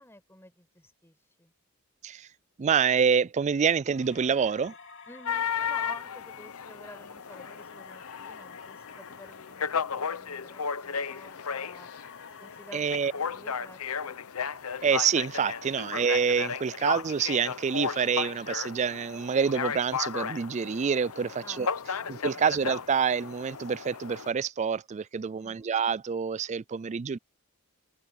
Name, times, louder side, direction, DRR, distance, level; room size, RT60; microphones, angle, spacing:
voice 1, 0.0-1.5 5.1-11.9 12.4-14.2 21.4-22.5 25.4-25.7, left 1 dB, 10° left, 6.8 m, -51 dB
voice 2, 2.6-4.7 12.7-13.1 14.8-21.7 22.1-27.2, right 6 dB, 30° right, 0.3 m, -27 dB
sound 1, 3.8-14.0 14.4-17.8, left 6 dB, 55° left, 3.1 m, -52 dB
sound 2, 5.3-24.3, left 6 dB, 75° left, 0.8 m, -35 dB
head